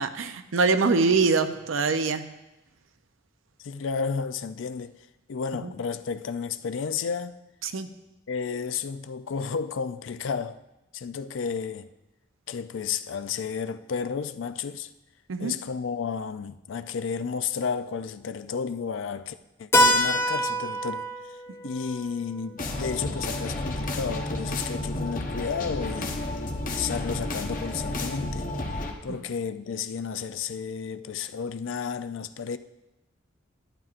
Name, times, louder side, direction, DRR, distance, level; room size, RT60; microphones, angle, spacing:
voice 1, 0.0-2.2 5.6-5.7 7.6-7.9 15.3-15.5, right 4 dB, 80° right, 0.6 m, -24 dB
voice 2, 3.6-4.9 5.3-7.4 8.3-10.6 10.9-11.9 12.5-14.9 15.4-21.4 21.6-26.2 26.7-28.5 29.0-32.6, left 6 dB, 70° left, 0.4 m, -32 dB
Keyboard (musical), 19.7-24.2, equal, 15° left, 0.5 m, -27 dB
sound 1, 22.6-28.9, left 1 dB, 45° left, 1.0 m, -31 dB
11.5 x 10.5 x 2.5 m
head